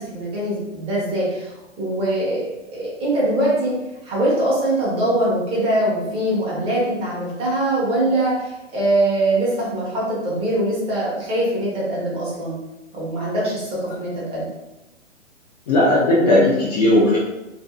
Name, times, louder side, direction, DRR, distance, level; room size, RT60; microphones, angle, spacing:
voice 1, 0.0-3.7 4.0-12.6 12.9-14.4, right 1 dB, 15° right, -7 dB, 0.8 m, -22 dB
voice 2, 15.7-17.2, left 1 dB, 35° left, -6 dB, 0.4 m, -16 dB
2.6 x 2.5 x 2.3 m, 0.99 s
figure-of-eight pair, 120°, 38 cm